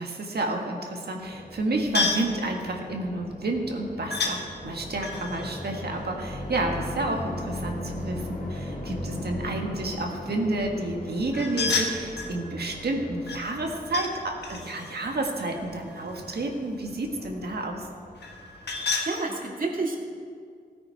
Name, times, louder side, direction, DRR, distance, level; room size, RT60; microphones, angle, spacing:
voice 1, 0.0-17.9, right 2 dB, 70° right, 1 dB, 1.6 m, -30 dB
sound 1, 1.2-18.9, left 1 dB, 60° left, 2.9 m, -39 dB
sound 2, 1.9-2.3 4.1-4.4 5.0-6.8 11.3-12.4 13.3-14.1 14.4-16.3 18.2-19.1, left 3 dB, 85° left, 1.4 m, -31 dB
voice 2, 18.7-20.0, right 3 dB, 55° right, 0 dB, 2.1 m, -30 dB
16.0 x 9.6 x 4.6 m, 2.1 s
wide cardioid pair, 75°, 17 cm